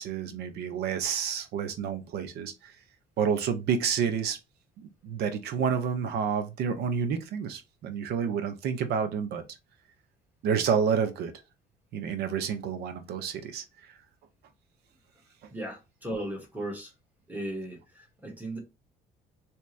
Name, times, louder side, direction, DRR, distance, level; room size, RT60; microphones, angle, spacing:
voice 1, 0.0-2.7 3.2-4.4 4.8-9.4 10.4-11.3 11.9-13.6, right 7 dB, 75° right, 0.8 m, -29 dB
voice 2, 15.5-16.9 17.3-18.6, right 1 dB, 10° right, 1.7 m, -36 dB
3.5 x 3.0 x 3.2 m
cardioid pair, 110°, 17 cm